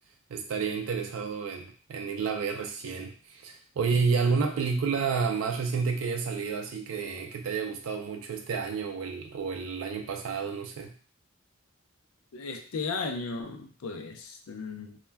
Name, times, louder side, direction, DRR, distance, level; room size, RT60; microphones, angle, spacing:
voice 1, 0.3-10.9, right 5 dB, 70° right, 4 dB, 0.4 m, -30 dB
voice 2, 12.3-15.0, left 4 dB, 85° left, 5 dB, 0.4 m, -35 dB
2.2 x 2.1 x 3.3 m, 0.41 s
head